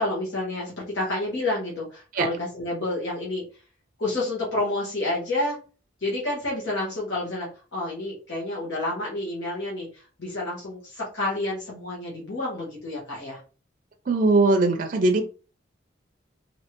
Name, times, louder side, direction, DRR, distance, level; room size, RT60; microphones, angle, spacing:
voice 1, 0.0-3.4 4.0-5.6 6.0-13.4, left 2 dB, 70° left, -6 dB, 1.3 m, -29 dB
voice 2, 14.1-15.2, right 2 dB, 45° right, 5 dB, 0.4 m, -20 dB
3.2 x 2.7 x 2.9 m, 0.36 s
head